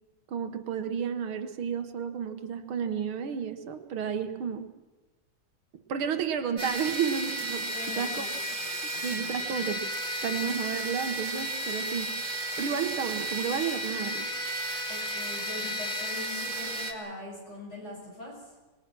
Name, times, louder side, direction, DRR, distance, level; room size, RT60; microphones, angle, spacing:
voice 1, 0.3-4.7 5.9-8.3 8.8-9.8 10.2-12.1 12.6-14.3, right 7 dB, 85° right, 8 dB, 2.2 m, -32 dB
sound 1, 6.6-16.9, right 1 dB, 60° right, 2.7 m, -33 dB
voice 2, 7.7-8.3 8.6-8.7 8.9-9.3 14.9-18.3, left 2 dB, 30° left, -3 dB, 8.4 m, -42 dB
25.5 x 21.0 x 6.1 m, 1.2 s
omnidirectional pair, 2.2 m